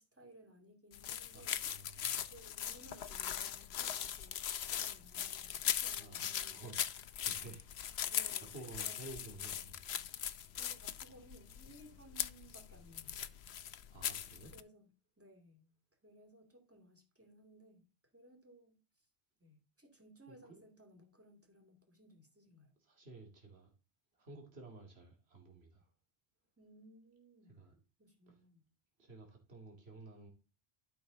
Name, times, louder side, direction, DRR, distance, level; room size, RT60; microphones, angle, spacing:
voice 1, 0.0-6.8 8.0-9.0 10.5-13.3 14.5-14.8 15.2-15.7 16.0-17.9 18.1-19.1 19.4-22.8 26.6-27.7 28.0-28.7, right 1 dB, 10° right, 2.4 m, -60 dB
sound 1, 0.9-14.6, left 10 dB, 75° left, 0.9 m, -40 dB
voice 2, 1.3-2.3 6.0-7.6 7.9-9.8 13.9-14.5 20.3-20.6 22.8-23.7 24.1-25.9 27.6-27.7 28.3-28.4 29.0-30.3, right 3 dB, 70° right, 2.6 m, -53 dB
12.0 x 6.2 x 3.9 m
omnidirectional pair, 1.1 m